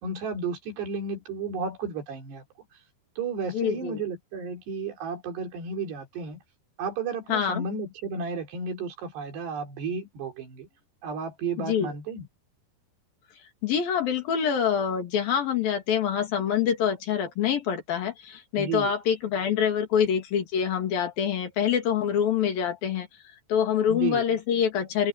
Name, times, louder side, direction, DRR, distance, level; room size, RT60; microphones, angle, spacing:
voice 1, 0.0-2.4 3.2-6.4 6.8-10.7 11.0-12.3 18.6-18.9 23.9-24.2, right 4 dB, 90° right, 5.8 m, -33 dB
voice 2, 3.5-4.0 7.3-7.6 11.6-11.9 13.6-23.1 23.5-25.1, left 8 dB, 65° left, 4.2 m, -25 dB
omnidirectional pair, 4.7 m